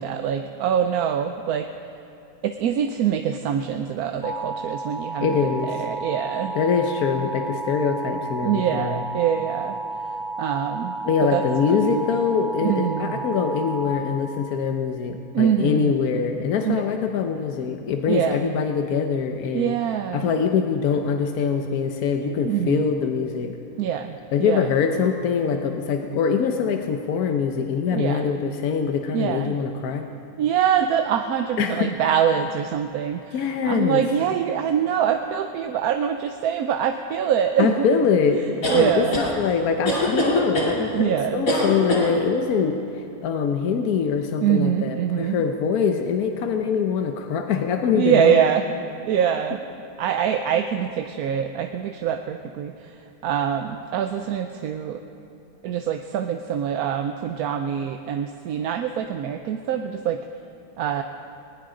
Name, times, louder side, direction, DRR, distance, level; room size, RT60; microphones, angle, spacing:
voice 1, 0.0-1.7 2.4-5.4 5.7-6.5 8.4-9.8 10.4-10.9 11.2-11.4 11.7-12.0 12.6-13.1 15.3-15.9 16.7-16.8 18.1-18.5 19.5-20.3 22.4-22.9 23.8-24.6 27.9-28.3 29.1-29.5 30.4-37.9 38.7-39.2 40.7-41.5 44.4-45.4 47.9-48.6 49.1-49.6 50.0-52.7 53.2-55.0 55.6-60.2 60.8-61.0, right 9 dB, 80° right, 6 dB, 1.1 m, -24 dB
sound 1, 4.2-13.9, right 2 dB, 20° right, 1.4 m, -32 dB
voice 2, 5.2-5.8 6.5-9.0 11.0-19.7 20.1-23.6 24.3-30.1 31.6-31.9 33.3-34.0 37.6-48.4, left 6 dB, 75° left, 5 dB, 1.3 m, -23 dB
sound 2, 38.6-39.3 39.9-40.7 41.5-42.1, left 1 dB, 60° left, 2.9 m, -22 dB
19.5 x 19.5 x 3.8 m, 3.0 s
omnidirectional pair, 1.6 m